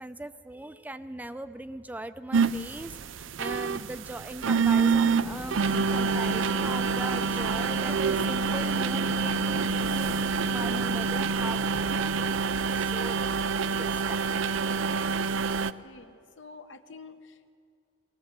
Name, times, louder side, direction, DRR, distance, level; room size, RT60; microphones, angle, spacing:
voice 1, 0.0-13.2 13.7-14.6, right 1 dB, 10° right, 11 dB, 0.5 m, -40 dB
sound 1, 2.3-15.7, right 5 dB, 90° right, 0.5 m, -27 dB
sound 2, 5.2-12.5, left 2 dB, 30° left, 0.6 m, -42 dB
voice 2, 15.8-17.5, left 4 dB, 75° left, 8 dB, 1.1 m, -48 dB
19.5 x 18.0 x 7.5 m, 2.3 s
head